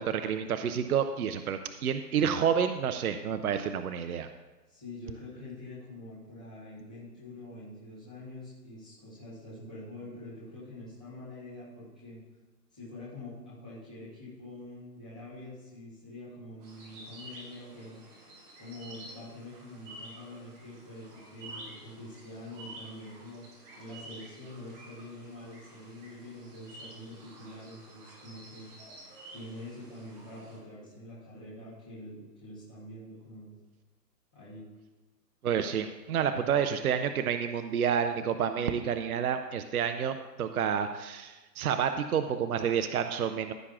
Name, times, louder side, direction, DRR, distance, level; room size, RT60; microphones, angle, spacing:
voice 1, 0.0-4.3 35.4-43.5, right 7 dB, 60° right, 8 dB, 0.6 m, -29 dB
voice 2, 4.7-12.2 12.7-18.0 18.6-23.4 23.7-28.7 29.3-33.5 34.3-34.7, left 1 dB, 5° left, -11 dB, 0.6 m, -45 dB
sound 1, 16.6-30.6, right 2 dB, 25° right, 2.1 m, -50 dB
15.0 x 7.3 x 2.4 m, 1.2 s
hypercardioid pair, 155°, 50 cm